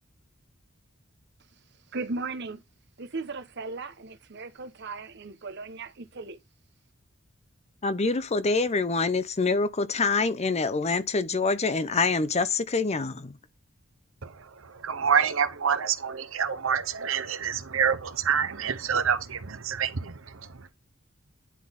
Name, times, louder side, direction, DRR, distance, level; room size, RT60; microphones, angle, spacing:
voice 1, 1.9-2.6 3.0-6.4, right 3 dB, 60° right, 1.0 m, -36 dB
voice 2, 7.8-13.4, left 4 dB, 35° left, 0.6 m, -26 dB
voice 3, 14.2-20.7, right 7 dB, 85° right, 0.9 m, -27 dB
10.0 x 4.0 x 3.6 m
head